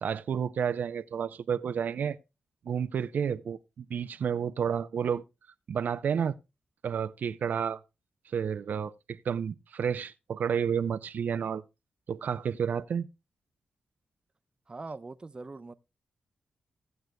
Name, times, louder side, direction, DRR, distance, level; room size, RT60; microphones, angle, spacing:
voice 1, 0.0-2.2 2.7-5.2 5.7-6.3 6.8-7.8 8.3-11.6 12.1-13.1, right 7 dB, 70° right, 0.5 m, -30 dB
voice 2, 14.7-15.7, right 3 dB, 30° right, 0.7 m, -42 dB
17.0 x 7.8 x 2.2 m
cardioid pair, 75°, 3 cm